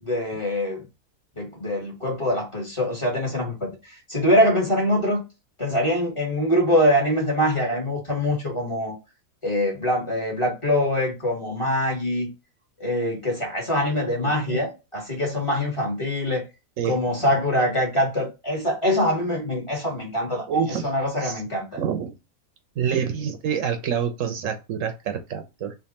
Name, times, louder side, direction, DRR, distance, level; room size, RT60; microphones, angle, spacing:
voice 1, 0.0-0.8 1.4-3.7 4.1-5.2 5.6-9.0 9.4-12.3 12.8-16.5 16.8-20.4 20.8-21.7, left 1 dB, 20° left, 1.5 m, -23 dB
voice 2, 14.1-14.6 16.8-17.0 20.5-21.4 21.8-22.1 22.8-25.7, right 7 dB, 70° right, 0.9 m, -27 dB
3.4 x 2.5 x 4.0 m
omnidirectional pair, 1.5 m